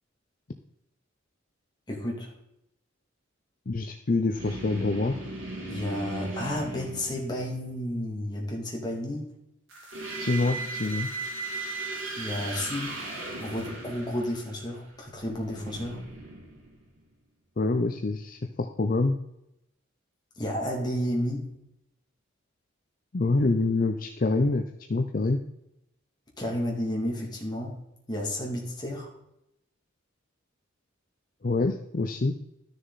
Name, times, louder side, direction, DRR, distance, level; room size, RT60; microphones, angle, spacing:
voice 1, 1.9-2.3 5.7-9.3 12.2-13.0 13.4-16.1 20.4-21.5 26.4-29.1, left 1 dB, 20° left, -1 dB, 2.4 m, -32 dB
voice 2, 3.7-5.2 10.2-11.1 17.6-19.2 23.1-24.6 24.9-25.4 31.4-32.3, left 3 dB, 45° left, 6 dB, 0.6 m, -26 dB
sound 1, 4.4-7.7 9.7-17.0, right 2 dB, 85° right, 3.0 m, -37 dB
12.5 x 6.5 x 4.1 m, 0.83 s
head